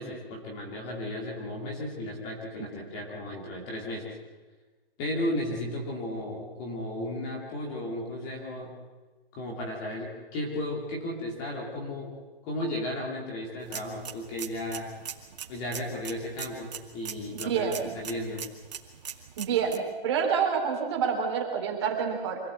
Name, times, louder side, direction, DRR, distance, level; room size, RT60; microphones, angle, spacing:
voice 1, 0.0-4.1 5.0-8.7 9.3-12.1 12.4-14.9 15.5-18.4, left 1 dB, 15° left, -1 dB, 2.5 m, -34 dB
sound 1, 13.6-19.8, right 8 dB, 45° right, 2.1 m, -42 dB
voice 2, 17.4-17.9 19.4-22.4, right 6 dB, 30° right, 1 dB, 3.2 m, -28 dB
25.5 x 16.0 x 8.3 m, 1.3 s
hypercardioid pair, 175°, 29 cm